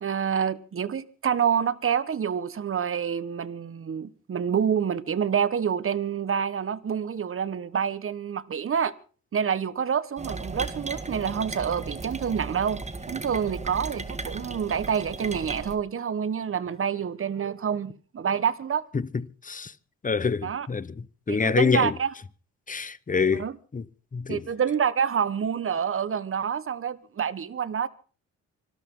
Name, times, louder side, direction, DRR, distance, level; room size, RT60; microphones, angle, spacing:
voice 1, 0.0-8.9 9.3-12.8 13.1-18.8 20.4-20.7 21.3-22.1 23.3-23.6 24.3-27.9, right 7 dB, 45° right, 1.5 m, -27 dB
sound 1, 10.2-15.8, right 3 dB, 20° right, 1.9 m, -36 dB
voice 2, 20.0-20.9 21.3-21.9 22.7-23.4 23.7-23.8 24.1-24.4, left 5 dB, 25° left, 1.1 m, -25 dB
25.5 x 13.0 x 3.9 m
cardioid pair, 80°, 31 cm